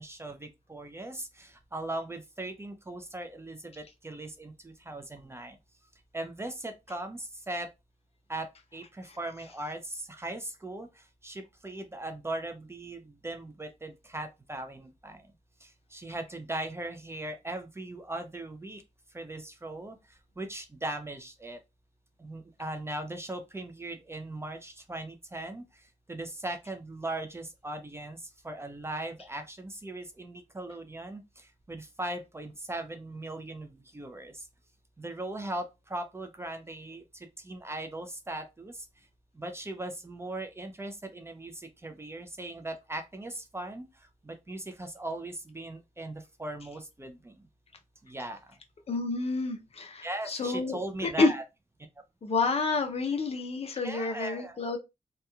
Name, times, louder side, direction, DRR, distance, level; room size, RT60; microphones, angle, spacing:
voice 1, 0.0-5.6 6.1-7.7 8.3-15.2 15.6-18.8 19.1-21.6 22.2-34.5 35.0-38.9 39.3-47.4 48.0-48.4 50.0-51.4 53.8-54.6, right 1 dB, 20° right, 0.4 m, -39 dB
voice 2, 48.9-51.3 52.2-54.8, left 3 dB, 45° left, 0.5 m, -29 dB
2.9 x 2.2 x 2.3 m
wide cardioid pair, 115°, 14 cm